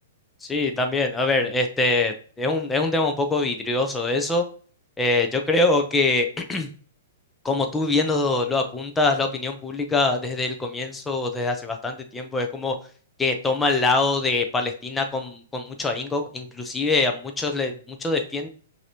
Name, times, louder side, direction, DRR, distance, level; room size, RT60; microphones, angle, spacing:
voice 1, 0.4-4.5 5.0-6.7 7.4-12.8 13.2-18.5, left 3 dB, 10° left, 4 dB, 0.6 m, -24 dB
5.7 x 2.8 x 2.8 m, 0.43 s
hypercardioid pair, 130°, 0 cm